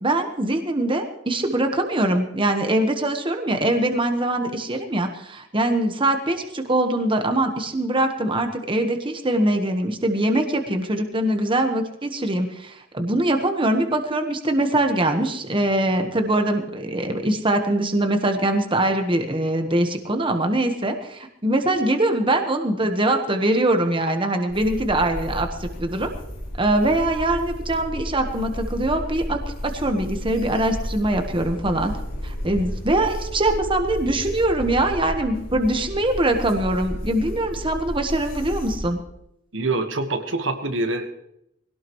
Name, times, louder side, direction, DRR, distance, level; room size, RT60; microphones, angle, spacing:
voice 1, 0.0-26.1 26.5-31.9 32.2-39.0, right 1 dB, 25° right, 5 dB, 1.3 m, -23 dB
sound 1, 24.5-38.8, equal, 85° left, 4.2 m, -33 dB
voice 2, 39.5-41.1, right 2 dB, 75° right, 5 dB, 1.5 m, -25 dB
21.0 x 17.5 x 3.1 m, 0.79 s
head